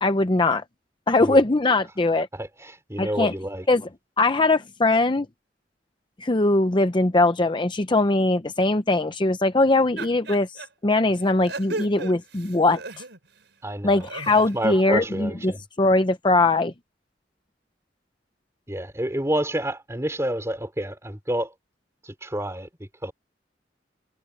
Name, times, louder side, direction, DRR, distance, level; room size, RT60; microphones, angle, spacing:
voice 1, 0.0-0.6 1.1-2.3 3.0-3.3 3.7-3.9 4.2-5.3 6.2-12.8 13.8-16.7, left 2 dB, 25° left, 0.7 m, -21 dB
voice 2, 2.3-3.7 13.6-14.1 14.3-15.6 18.7-21.5 22.0-22.7 23.0-23.1, right 1 dB, 15° right, 3.7 m, -29 dB
sound 1, 10.0-10.7 11.2-13.4 13.8-14.6, right 3 dB, 80° right, 4.3 m, -36 dB
head